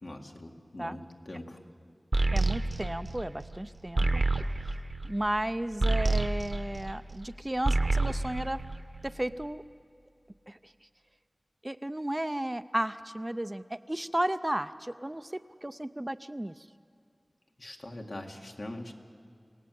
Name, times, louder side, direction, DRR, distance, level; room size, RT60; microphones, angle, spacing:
voice 1, 0.0-1.6 17.6-18.9, left 1 dB, 65° left, 2 dB, 2.0 m, -42 dB
sound 1, 2.1-7.3 7.6-9.3, right 2 dB, 50° right, 1.0 m, -29 dB
voice 2, 2.3-4.2 5.0-8.6 9.0-9.6 10.5-10.6 11.6-16.5, right 1 dB, 20° right, 11 dB, 0.5 m, -33 dB
28.0 x 18.0 x 7.7 m, 2.5 s
wide cardioid pair, 60°, 0 cm